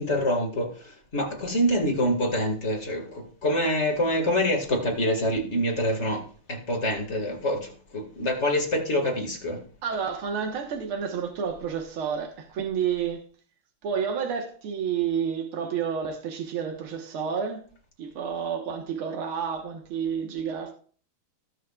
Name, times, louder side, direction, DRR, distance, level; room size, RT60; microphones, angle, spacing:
voice 1, 0.0-9.6, equal, 35° left, 2.1 m, -26 dB
voice 2, 9.8-13.2 13.8-17.6 18.0-20.7, right 7 dB, 80° right, 2.2 m, -30 dB
19.0 x 6.5 x 2.4 m
omnidirectional pair, 2.3 m